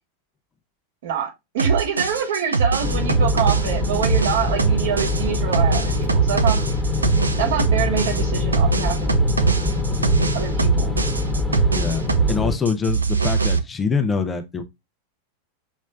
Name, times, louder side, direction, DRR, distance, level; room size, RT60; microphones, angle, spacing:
voice 1, 1.0-6.6 7.4-9.2 10.3-11.0, right 8 dB, 55° right, 1.5 m, -26 dB
sound 1, 1.6-12.4 12.7-13.6, right 5 dB, 80° right, 0.6 m, -22 dB
sound 2, 2.8-12.6, left 2 dB, ahead, 1.3 m, -24 dB
voice 2, 11.7-12.0 12.3-14.6, left 5 dB, 15° left, 0.7 m, -24 dB
6.3 x 3.2 x 2.3 m
figure-of-eight pair, 90°, 0 cm